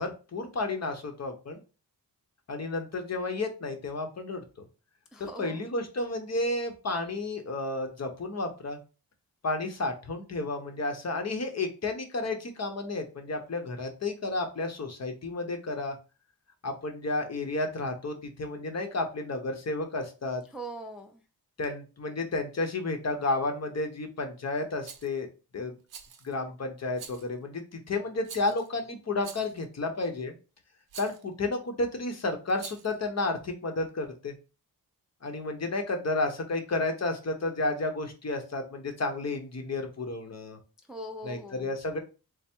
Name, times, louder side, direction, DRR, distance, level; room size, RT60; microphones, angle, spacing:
voice 1, 0.0-1.6 2.5-4.7 5.2-8.8 9.4-16.0 16.6-20.4 21.6-25.3 25.5-25.7 26.2-30.3 31.0-34.3 35.2-40.6 41.2-42.0, left 2 dB, 45° left, 4 dB, 0.8 m, -32 dB
voice 2, 5.1-5.6 20.5-21.2 40.9-41.7, right 1 dB, ahead, 4 dB, 0.4 m, -41 dB
Rattle, 24.8-25.1 25.9-26.3 26.9-27.3 28.2-28.7 29.2-29.6 30.9-31.2 32.5-33.0, right 7 dB, 75° right, 0.6 m, -45 dB
3.4 x 2.1 x 4.3 m, 0.32 s
wide cardioid pair, 90°, 37 cm